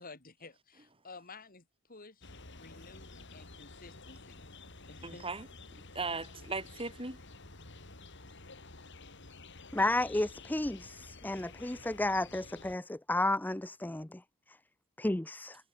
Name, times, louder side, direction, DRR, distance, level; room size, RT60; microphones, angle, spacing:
voice 1, 0.0-1.6 1.9-2.2 2.5-4.5 4.9-5.3, left 3 dB, 45° left, 3.2 m, -52 dB
sound 1, 2.2-12.8, left 3 dB, 60° left, 4.7 m, -51 dB
voice 2, 5.0-7.2, right 3 dB, 25° right, 6.0 m, -38 dB
voice 3, 9.7-14.2 15.0-15.6, left 1 dB, 10° left, 0.6 m, -32 dB
head